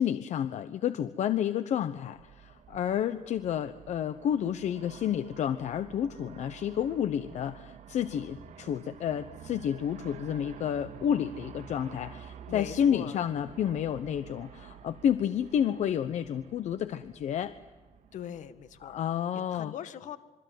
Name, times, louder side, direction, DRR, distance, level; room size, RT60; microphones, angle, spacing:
voice 1, 0.0-17.5 18.8-19.7, left 9 dB, 70° left, 12 dB, 1.0 m, -30 dB
Aircraft, 1.9-19.2, right 8 dB, 80° right, 2.3 m, -50 dB
voice 2, 12.5-13.2 18.1-19.0 19.3-20.2, left 9 dB, 85° left, 11 dB, 1.8 m, -41 dB
26.5 x 24.0 x 9.4 m, 1.2 s
cardioid pair, 160°, 12 cm